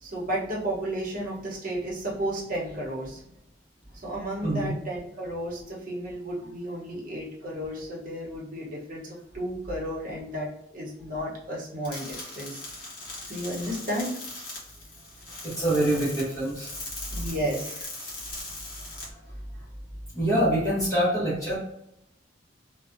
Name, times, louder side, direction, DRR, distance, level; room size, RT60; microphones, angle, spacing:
voice 1, 0.0-3.2 4.0-10.5 10.7-12.6 13.3-14.1 17.1-17.9, right 1 dB, 50° right, -4 dB, 0.9 m, -33 dB
sound 1, 11.8-19.0, left 2 dB, 55° left, 1.2 m, -40 dB
voice 2, 15.4-16.8 17.1-17.2 20.1-21.6, right 1 dB, 20° left, -10 dB, 0.9 m, -25 dB
2.5 x 2.2 x 2.5 m, 0.77 s
head